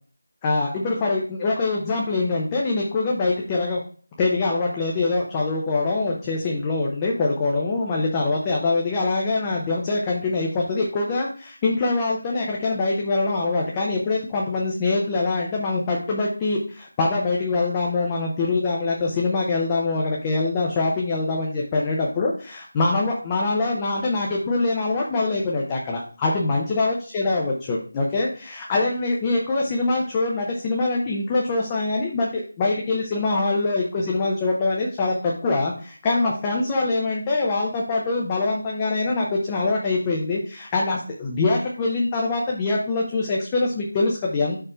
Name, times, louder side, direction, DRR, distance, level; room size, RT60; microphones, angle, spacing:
voice 1, 0.4-3.8 4.2-44.6, left 3 dB, 10° left, -2 dB, 0.5 m, -24 dB
6.6 x 5.1 x 4.3 m, 0.42 s
figure-of-eight pair, 180°, 0 cm